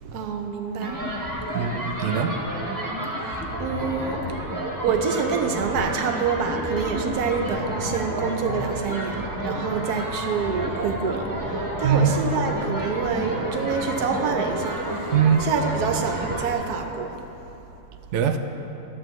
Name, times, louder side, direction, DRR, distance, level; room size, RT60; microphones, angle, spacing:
voice 1, 0.1-0.9 3.6-4.2 4.8-11.3 11.8-15.1 15.5-17.2, right 5 dB, 90° right, 4 dB, 1.3 m, -26 dB
sound 1, 0.8-16.5, right 1 dB, 15° right, 0.7 m, -30 dB
voice 2, 1.5-2.3 11.8-12.2 15.1-15.5 18.1-18.4, right 7 dB, 65° right, 6 dB, 0.7 m, -21 dB
12.5 x 7.5 x 3.1 m, 2.9 s
omnidirectional pair, 1.6 m